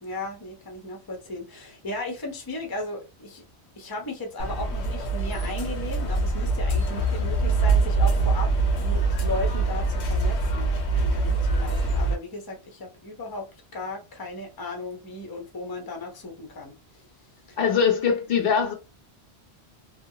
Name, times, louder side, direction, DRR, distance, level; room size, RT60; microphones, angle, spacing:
voice 1, 0.0-3.4 3.8-13.5 13.7-17.1 17.5-17.6, left 2 dB, 25° left, 0.6 m, -36 dB
sound 1, 4.4-12.1, right 3 dB, 85° left, 1.0 m, -24 dB
voice 2, 17.6-18.7, left 6 dB, 65° left, 0.8 m, -22 dB
2.7 x 2.1 x 2.7 m
omnidirectional pair, 1.1 m